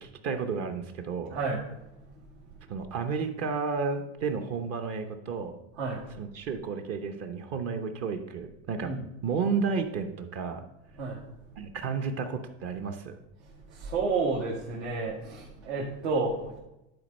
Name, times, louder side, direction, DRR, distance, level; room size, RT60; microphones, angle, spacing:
voice 1, 0.0-1.4 2.7-5.6 6.1-8.9 9.2-10.7 11.6-13.2, right 5 dB, 40° right, 6 dB, 0.9 m, -32 dB
voice 2, 13.9-15.1 15.6-16.6, right 4 dB, 75° right, -5 dB, 2.2 m, -29 dB
11.0 x 4.4 x 5.3 m, 0.92 s
supercardioid pair, 140°, 37 cm